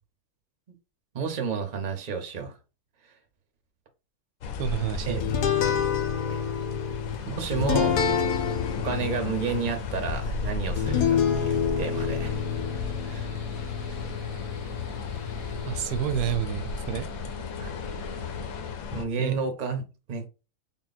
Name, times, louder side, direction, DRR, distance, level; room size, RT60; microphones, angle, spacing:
voice 1, 1.1-2.6 5.1-5.2 6.3-6.4 7.3-8.1 8.7-12.4 13.0-13.3 17.6-17.7 18.9-19.8 20.1-20.3, right 5 dB, 40° right, 0.8 m, -31 dB
sound 1, 4.4-19.0, left 5 dB, 70° left, 1.0 m, -35 dB
voice 2, 4.6-5.3 15.6-17.1 19.2-19.4, right 10 dB, 80° right, 1.1 m, -29 dB
sound 2, 5.2-15.8, left 7 dB, 90° left, 1.3 m, -28 dB
sound 3, 11.9-18.8, left 3 dB, 55° left, 0.4 m, -43 dB
3.8 x 2.2 x 4.0 m
omnidirectional pair, 1.7 m